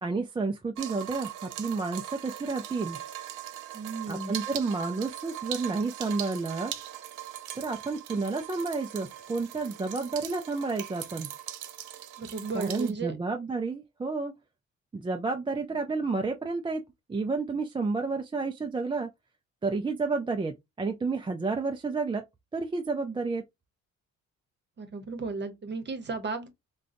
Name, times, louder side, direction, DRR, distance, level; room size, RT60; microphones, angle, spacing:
voice 1, 0.0-3.0 4.1-6.7 7.6-11.3 12.5-14.3 14.9-16.8 17.1-19.1 19.6-22.2 22.5-23.4, right 3 dB, 15° right, 0.4 m, -31 dB
sound 1, 0.8-12.9, right 12 dB, 85° right, 0.6 m, -40 dB
voice 2, 3.7-4.3 12.2-13.2 24.8-26.5, right 4 dB, 35° right, 1.0 m, -34 dB
3.7 x 2.3 x 2.5 m
cardioid pair, 90°, 30 cm